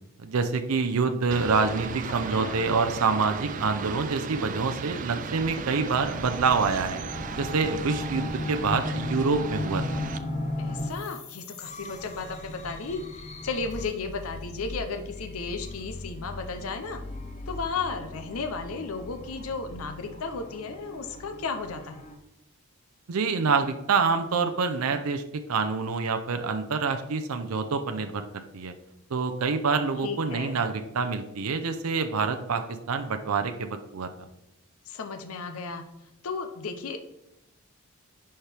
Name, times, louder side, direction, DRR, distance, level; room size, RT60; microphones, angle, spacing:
voice 1, 0.2-7.0 7.4-10.0 23.1-25.2 25.5-28.7 29.1-34.3, right 4 dB, 80° right, 7 dB, 0.6 m, -26 dB
sound 1, 1.3-10.2, right 5 dB, 35° right, 0.3 m, -36 dB
voice 2, 2.1-2.6 10.6-17.0 17.5-22.0 30.0-30.6 34.9-35.8 36.2-37.0, left 4 dB, 75° left, 7 dB, 0.7 m, -34 dB
sound 2, 6.0-22.1, left 2 dB, 30° left, 0.7 m, -37 dB
10.5 x 4.4 x 3.4 m, 0.88 s
head